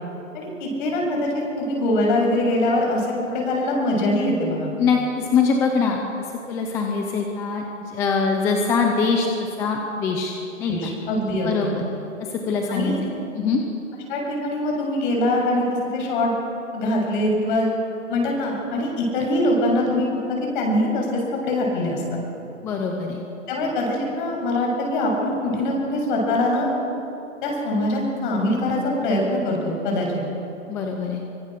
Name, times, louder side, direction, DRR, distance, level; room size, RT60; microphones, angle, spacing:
voice 1, 0.3-3.0 3.3-4.7 10.7-11.7 12.7-13.0 14.1-15.6 15.9-16.3 16.7-17.7 18.1-22.2 23.5-26.7 27.4-30.2, left 1 dB, 40° left, 0 dB, 7.6 m, -23 dB
voice 2, 4.8-6.0 6.5-10.3 10.6-10.9 11.4-11.8 12.3-13.6 22.6-23.2 30.7-31.2, left 5 dB, 5° left, 2 dB, 0.5 m, -23 dB
24.5 x 23.0 x 6.6 m, 3.0 s
hypercardioid pair, 155°, 39 cm